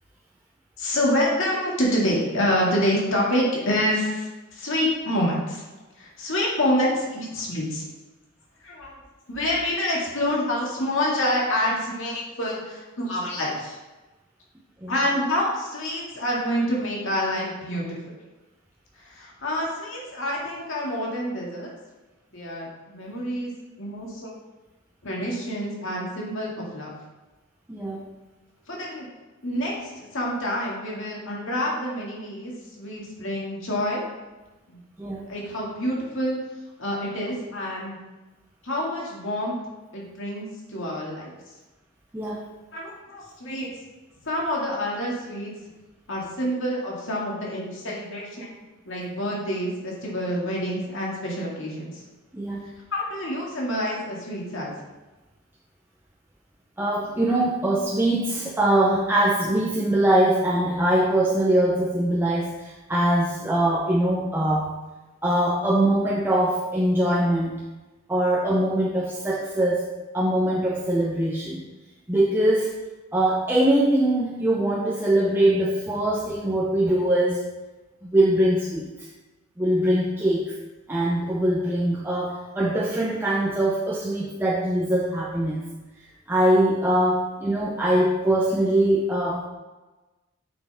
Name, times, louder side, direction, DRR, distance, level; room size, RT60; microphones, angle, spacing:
voice 1, 0.8-5.6 6.0-7.8 8.6-9.0 9.3-13.8 14.9-18.1 19.0-21.7 22.3-23.5 23.8-24.3 25.0-26.9 28.7-29.1 29.4-34.0 34.7-34.8 35.3-36.4 36.8-38.0 38.6-39.5 39.9-41.3 42.7-43.7 44.2-45.5 46.1-48.5 48.8-52.0 52.9-54.7, left 1 dB, 60° left, -3 dB, 2.0 m, -27 dB
voice 2, 27.7-28.0 35.0-35.3 42.1-42.5 52.3-52.7 56.8-64.7 65.2-67.5 68.1-69.9 70.1-71.6 72.1-72.8 73.1-77.4 78.0-78.9 79.6-80.5 80.9-85.6 86.3-89.5, right 1 dB, 10° right, -3 dB, 0.6 m, -22 dB
7.9 x 6.3 x 3.4 m, 1.1 s
head